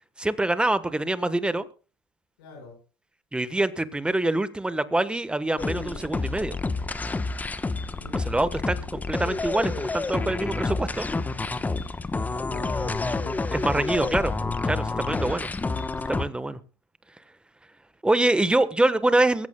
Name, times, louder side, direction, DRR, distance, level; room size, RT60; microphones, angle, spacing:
voice 1, 0.2-1.7 3.3-6.6 8.1-11.1 13.5-14.3 14.6-15.5 16.1-16.6 18.0-19.5, right 2 dB, 10° right, 13 dB, 1.2 m, -25 dB
voice 2, 2.4-2.8 7.8-8.2 12.2-13.5, left 2 dB, 80° left, 1 dB, 5.0 m, -43 dB
sound 1, 5.6-16.2, left 3 dB, 15° left, 1.0 m, -29 dB
22.5 x 14.5 x 2.3 m, 0.36 s
hypercardioid pair, 95°, 12 cm